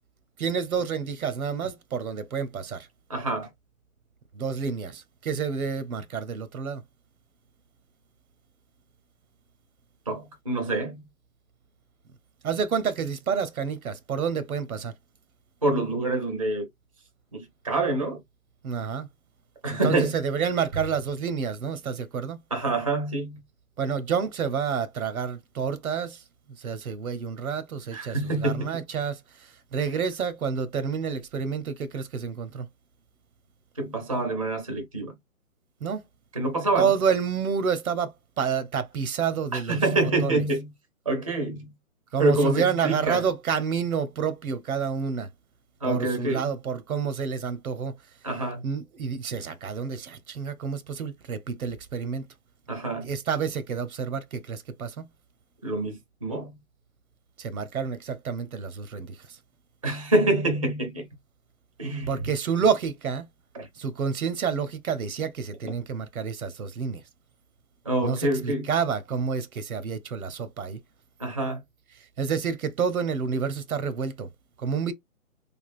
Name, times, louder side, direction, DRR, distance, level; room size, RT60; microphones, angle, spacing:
voice 1, 0.4-2.9 4.3-6.8 12.4-14.9 18.6-19.1 19.7-22.4 23.8-26.2 26.6-32.7 35.8-36.0 36.8-39.8 40.2-40.4 42.1-45.3 45.8-47.9 48.6-52.3 53.0-55.1 57.4-59.4 62.0-63.3 63.8-67.0 68.0-70.8 72.2-74.3 74.6-74.9, right 6 dB, 80° right, 0.7 m, -29 dB
voice 2, 3.1-3.5 10.1-11.0 15.6-16.7 17.3-18.2 19.6-20.2 22.5-23.4 27.9-28.8 33.8-35.2 36.3-36.9 39.5-40.7 41.1-41.7 42.2-43.2 45.8-46.5 48.2-48.6 52.7-53.1 55.6-56.6 59.8-61.1 61.8-62.2 63.5-63.7 67.8-68.7 71.2-71.6, right 2 dB, 25° right, 0.5 m, -26 dB
3.3 x 2.3 x 2.4 m
hypercardioid pair, 160°, 42 cm